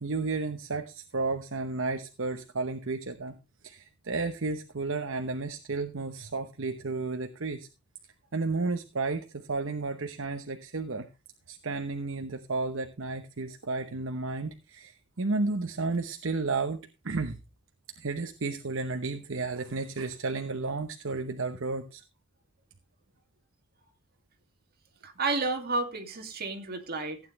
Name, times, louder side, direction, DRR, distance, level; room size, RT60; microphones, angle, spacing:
voice 1, 0.0-3.3 3.6-7.7 8.3-11.1 11.5-17.4 18.0-22.0, right 3 dB, 65° right, 0.9 m, -32 dB
voice 2, 25.0-27.2, right 3 dB, 45° right, 2.3 m, -31 dB
15.5 x 9.2 x 3.2 m
head